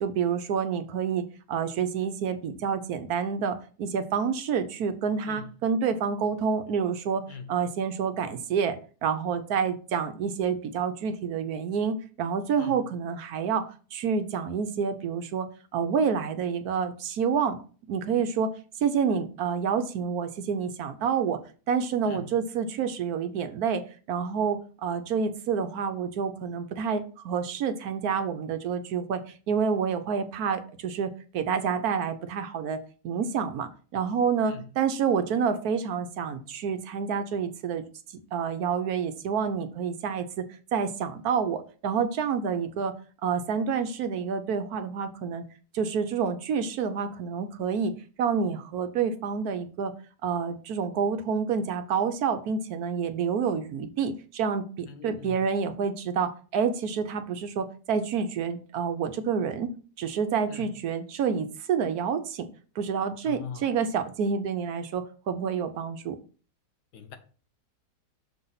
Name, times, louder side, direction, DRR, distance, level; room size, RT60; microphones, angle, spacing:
voice 1, 0.0-7.2 7.5-13.7 13.9-17.6 17.9-18.5 18.8-21.4 21.7-23.8 24.1-29.2 29.5-32.8 33.0-37.8 38.3-40.4 40.7-42.9 43.2-45.4 45.7-47.9 48.2-49.9 50.2-62.5 62.8-66.2, right 6 dB, 70° right, 1.1 m, -28 dB
voice 2, 54.9-55.4 60.5-60.7 63.2-63.7 66.9-67.2, left 6 dB, 75° left, 1.5 m, -41 dB
6.7 x 4.0 x 5.6 m
omnidirectional pair, 1.8 m